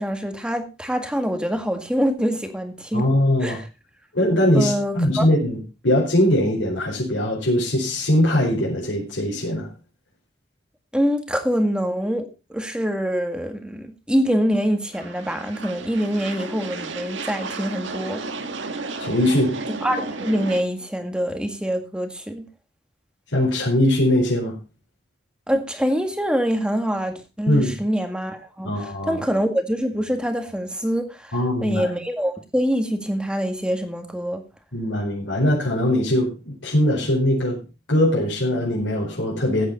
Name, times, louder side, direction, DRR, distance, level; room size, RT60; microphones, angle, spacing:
voice 1, 0.0-3.0 3.4-3.6 4.5-5.3 10.9-18.2 19.7-22.5 25.5-31.3 31.6-34.4, equal, 5° right, 1.8 m, -25 dB
voice 2, 2.9-3.6 4.1-9.7 19.0-19.6 23.3-24.6 27.5-27.7 28.6-29.2 31.3-31.9 34.7-37.6 37.9-39.7, left 1 dB, 85° left, 4.8 m, -21 dB
sound 1, 14.9-20.6, right 3 dB, 80° right, 1.6 m, -33 dB
14.5 x 9.5 x 4.2 m
head